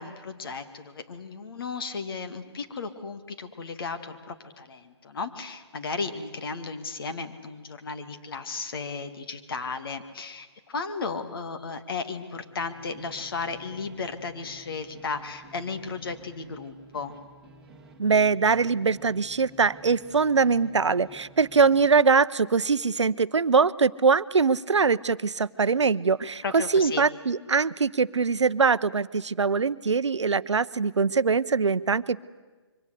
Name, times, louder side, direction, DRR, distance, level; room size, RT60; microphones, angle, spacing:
voice 1, 0.0-17.2 26.4-27.1, left 4 dB, 50° left, 8 dB, 2.1 m, -35 dB
sound 1, 12.4-22.0, right 2 dB, 5° right, 2.3 m, -52 dB
voice 2, 18.0-32.2, right 5 dB, 75° right, 16 dB, 0.7 m, -22 dB
26.0 x 24.0 x 8.2 m, 1.3 s
figure-of-eight pair, 140°, 15 cm